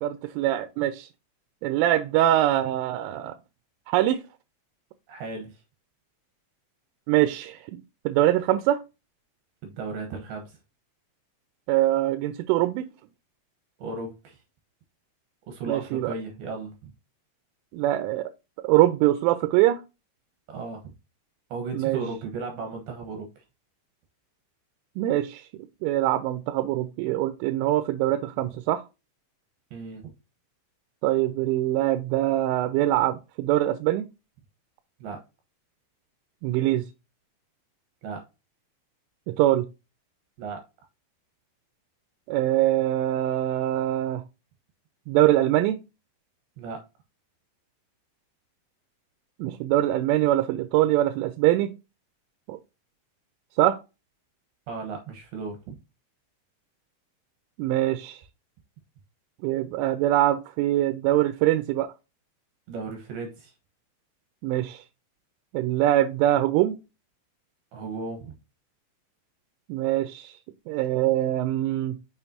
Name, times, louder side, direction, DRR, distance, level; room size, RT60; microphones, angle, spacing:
voice 1, 0.0-1.1 1.6-3.3 3.9-4.2 7.1-8.8 11.7-12.9 15.7-16.1 17.7-18.3 18.6-19.8 21.7-22.0 25.0-25.5 25.8-28.8 31.0-34.1 36.4-36.8 39.3-39.7 42.3-44.2 45.1-45.8 49.4-51.7 52.5-52.6 53.6-53.8 57.6-58.2 59.4-61.9 64.4-64.8 65.5-66.8 69.7-70.3 70.7-72.0, right 14 dB, 85° right, 3.1 m, -23 dB
voice 2, 5.1-5.6 9.6-10.6 13.8-14.4 15.5-16.9 20.5-20.9 21.5-23.4 29.7-30.1 35.0-35.2 38.0-38.2 40.4-40.6 46.6-46.8 54.7-55.7 62.7-63.5 67.7-68.3, right 4 dB, 70° right, 2.5 m, -35 dB
7.0 x 5.8 x 2.7 m
omnidirectional pair, 5.6 m